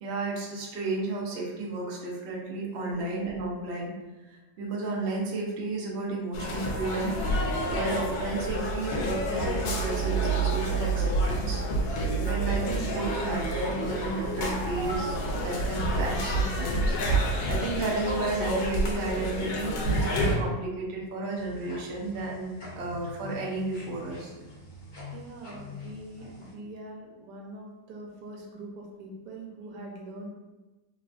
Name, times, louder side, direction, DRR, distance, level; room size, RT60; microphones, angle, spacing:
voice 1, 0.0-3.9 4.3-11.6 12.2-24.3, right 2 dB, 65° right, -3 dB, 0.6 m, -33 dB
sound 1, 6.3-20.4, right 1 dB, 85° left, 1.2 m, -28 dB
voice 2, 7.6-7.9 17.2-17.5 25.1-30.3, right 2 dB, 90° right, -1 dB, 1.3 m, -43 dB
sound 2, 12.9-16.3 16.6-16.7, right 2 dB, 20° right, 0.7 m, -38 dB
sound 3, 21.4-26.5, left 2 dB, 60° left, 0.4 m, -45 dB
3.2 x 2.3 x 2.4 m, 1.1 s
omnidirectional pair, 1.8 m